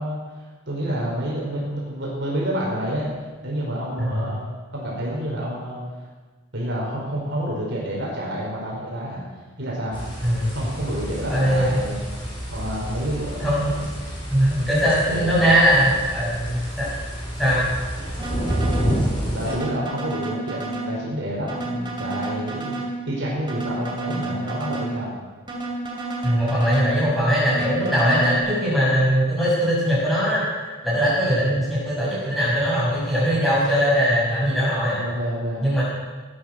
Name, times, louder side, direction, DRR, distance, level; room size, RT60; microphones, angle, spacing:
voice 1, 0.0-3.1 3.4-4.4 4.7-5.8 6.5-9.2 9.6-14.1 15.1-15.5 19.3-22.7 23.1-25.1 34.9-35.6, equal, 55° right, -4 dB, 4.8 m, -29 dB
sound 1, 9.9-19.5, equal, 25° left, 4.9 m, -29 dB
voice 2, 11.3-11.8 13.4-13.7 14.3-16.9 17.4-17.7 26.2-30.4 30.8-35.0 35.6-35.8, equal, ahead, -8 dB, 6.4 m, -20 dB
sound 2, 18.2-18.9 19.5-20.9 21.5-22.9 23.5-24.9 25.5-26.9 27.5-28.4, right 2 dB, 25° right, 2.9 m, -30 dB
19.0 x 10.5 x 6.5 m, 1.3 s
head